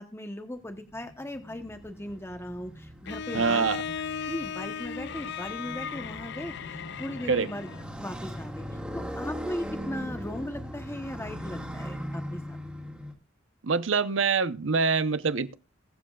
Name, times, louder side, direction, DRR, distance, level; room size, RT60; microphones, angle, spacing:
voice 1, 0.0-3.7 4.3-8.6 8.9-12.6, left 1 dB, 15° left, 1.0 m, -38 dB
Motorcycle, 0.6-13.1, equal, 5° right, 1.8 m, -40 dB
Bowed string instrument, 3.1-7.9, left 7 dB, 60° left, 0.4 m, -36 dB
voice 2, 3.3-3.8 7.3-7.5 13.6-15.6, right 5 dB, 75° right, 0.8 m, -25 dB
21.5 x 7.6 x 2.4 m
head